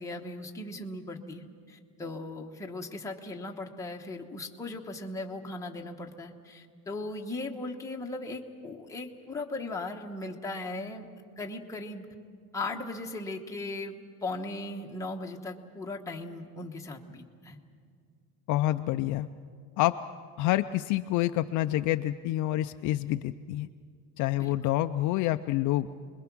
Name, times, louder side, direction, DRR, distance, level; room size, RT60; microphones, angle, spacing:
voice 1, 0.0-11.1 11.4-12.1 12.5-13.9 14.2-17.6 24.4-24.5, left 2 dB, 10° left, 1 dB, 1.1 m, -38 dB
voice 2, 18.5-19.3 19.8-20.0 20.4-23.7 24.2-26.0, left 15 dB, 55° left, 9 dB, 0.5 m, -27 dB
28.5 x 21.5 x 6.1 m, 2.1 s
cardioid pair, 170°, 38 cm